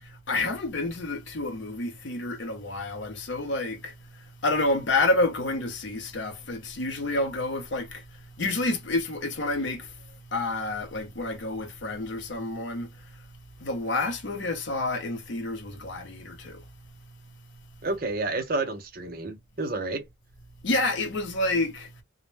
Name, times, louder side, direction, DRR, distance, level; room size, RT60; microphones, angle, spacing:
voice 1, 0.3-13.3 13.6-16.7 20.6-22.0, left 2 dB, 65° left, 0.6 m, -29 dB
voice 2, 17.8-20.1, right 2 dB, 50° right, 0.5 m, -30 dB
2.0 x 2.0 x 3.1 m
head